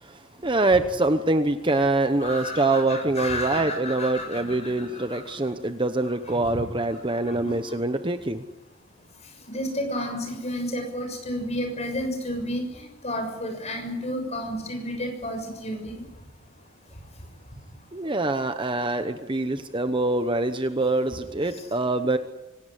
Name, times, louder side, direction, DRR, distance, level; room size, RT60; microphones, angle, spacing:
voice 1, 0.0-8.4 17.9-22.2, right 2 dB, 20° right, 9 dB, 1.0 m, -25 dB
voice 2, 2.2-5.2 6.3-6.5 7.2-7.5 9.5-12.6 13.0-15.9, left 1 dB, 30° left, 4 dB, 6.6 m, -31 dB
25.5 x 17.5 x 9.9 m, 1.0 s
head